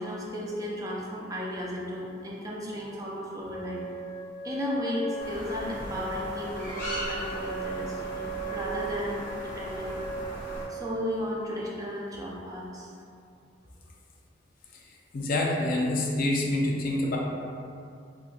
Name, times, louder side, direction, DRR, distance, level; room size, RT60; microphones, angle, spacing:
voice 1, 0.0-3.8 4.4-10.0 10.7-12.9, equal, 20° right, -4 dB, 0.4 m, -34 dB
Wind instrument woodwind instrument, 3.4-11.1, right 3 dB, 80° right, 0.9 m, -37 dB
sound 1, 5.2-10.6, left 1 dB, 15° left, 0.8 m, -38 dB
voice 2, 15.1-17.2, left 1 dB, 50° left, -2 dB, 0.4 m, -26 dB
4.0 x 2.3 x 2.4 m, 2.4 s
head